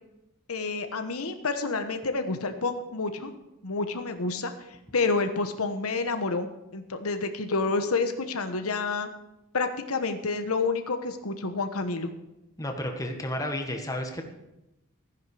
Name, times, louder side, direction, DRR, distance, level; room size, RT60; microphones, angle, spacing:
voice 1, 0.5-3.3 3.6-4.5 4.9-9.1 9.5-12.1, left 3 dB, 85° left, 8 dB, 1.1 m, -29 dB
voice 2, 12.6-14.2, left 1 dB, 15° left, 3 dB, 1.4 m, -32 dB
14.5 x 10.0 x 4.9 m, 0.92 s
head